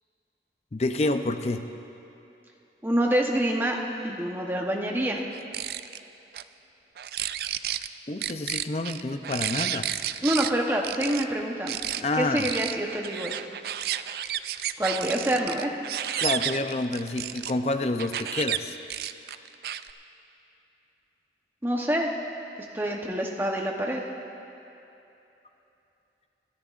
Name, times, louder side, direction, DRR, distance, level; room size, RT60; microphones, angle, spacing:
voice 1, 0.7-1.6 8.1-9.9 12.0-12.5 16.2-18.8, left 2 dB, 35° left, 7 dB, 0.5 m, -28 dB
voice 2, 2.8-3.8 4.0-5.2 10.2-11.8 12.2-13.4 14.8-15.7 21.6-22.1 22.7-24.0, right 1 dB, 10° right, 0 dB, 0.9 m, -26 dB
sound 1, 5.3-6.0 6.3-6.4 7.0-7.9 8.2-10.5 10.8-11.2 11.7-12.0 12.4-17.5 18.0-18.6 18.9-19.9, right 11 dB, 55° right, 0.3 m, -31 dB
24.0 x 13.0 x 2.5 m, 2.9 s
head